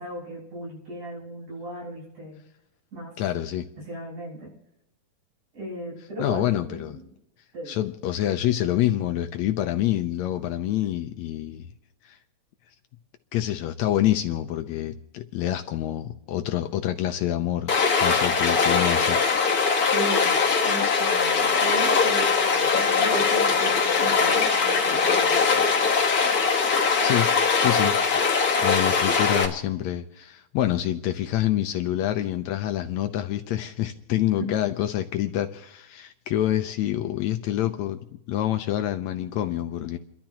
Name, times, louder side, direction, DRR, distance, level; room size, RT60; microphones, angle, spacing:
voice 1, 0.0-2.4 2.9-3.1 3.8-4.5 5.5-7.0 7.5-7.8 19.9-20.4 20.6-25.6 34.4-34.5, right 1 dB, 60° right, -5 dB, 8.2 m, -36 dB
voice 2, 3.2-3.7 6.2-7.0 7.7-11.7 12.0-12.2 13.3-17.7 18.0-19.4 26.4-26.7 27.0-27.3 27.6-28.0 28.6-38.0 38.3-40.0, left 12 dB, 80° left, 7 dB, 1.6 m, -27 dB
Stream, 17.7-29.5, left 5 dB, 45° left, 1.2 m, -21 dB
30.0 x 12.5 x 2.9 m, 0.82 s
omnidirectional pair, 3.9 m